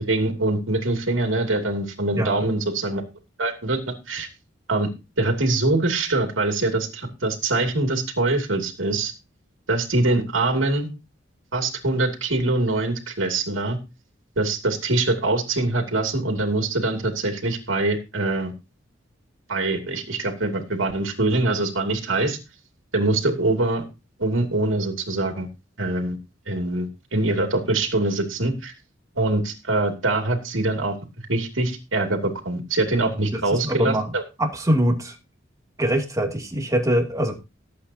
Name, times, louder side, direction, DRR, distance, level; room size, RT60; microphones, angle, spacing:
voice 1, 0.1-3.0 3.4-3.8 4.1-4.3 4.7-4.9 5.2-9.1 9.7-10.9 11.5-13.8 14.4-18.5 19.5-22.4 22.9-23.8 24.2-25.5 25.8-26.2 26.5-28.7 29.2-31.0 31.3-34.2, right 2 dB, 85° right, 2.6 m, -23 dB
voice 2, 33.3-34.1 34.4-35.2 35.8-37.3, equal, 15° right, 2.6 m, -23 dB
18.5 x 8.4 x 2.8 m
head